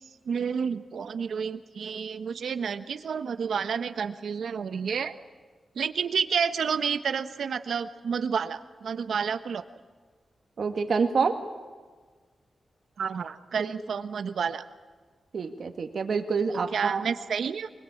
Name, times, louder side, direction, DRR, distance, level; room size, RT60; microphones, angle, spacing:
voice 1, 0.3-5.1 5.8-9.7 13.0-14.6 16.7-17.7, right 6 dB, 75° right, 10 dB, 1.2 m, -30 dB
voice 2, 10.6-11.4 13.6-13.7 15.3-17.1, right 5 dB, 60° right, 6 dB, 2.1 m, -27 dB
24.0 x 22.0 x 8.6 m, 1.5 s
wide cardioid pair, 140°, 0 cm